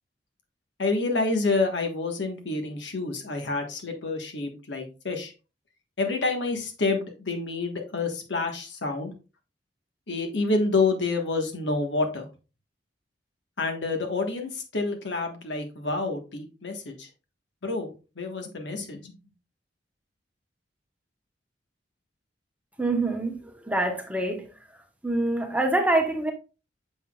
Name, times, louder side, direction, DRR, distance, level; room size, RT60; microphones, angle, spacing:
voice 1, 0.8-5.3 6.0-9.1 10.1-12.3 13.6-17.1 17.6-17.9 18.2-19.2, left 3 dB, 75° left, 1.3 m, -28 dB
voice 2, 22.8-24.5 25.0-26.3, right 2 dB, 10° right, 1.0 m, -25 dB
6.9 x 5.8 x 2.3 m
head